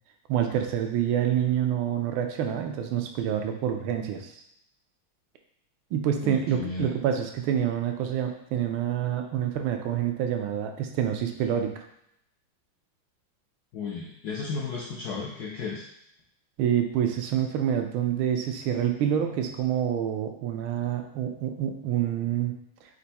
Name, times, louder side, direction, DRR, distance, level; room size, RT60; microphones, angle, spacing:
voice 1, 0.3-4.3 5.9-11.8 16.6-22.5, right 9 dB, 85° right, 4 dB, 1.4 m, -27 dB
voice 2, 6.2-6.9 13.7-15.9, left 5 dB, 75° left, -3 dB, 0.9 m, -34 dB
4.4 x 2.6 x 4.0 m, 0.76 s
omnidirectional pair, 2.3 m